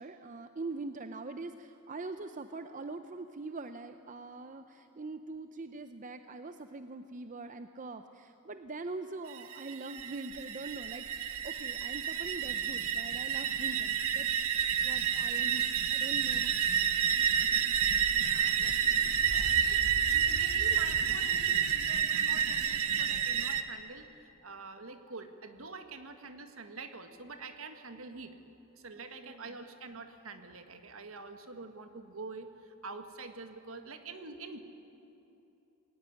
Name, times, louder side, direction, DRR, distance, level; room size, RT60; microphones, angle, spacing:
voice 1, 0.0-14.3 14.8-16.6 17.8-17.9 18.1-18.6 29.2-29.5, right 3 dB, 35° right, 9 dB, 0.6 m, -43 dB
sound 1, 9.3-23.6, right 8 dB, 85° right, 1.3 m, -29 dB
voice 2, 18.3-28.4 28.7-34.6, right 3 dB, 65° right, 7 dB, 1.7 m, -46 dB
21.5 x 17.5 x 9.9 m, 2.9 s
head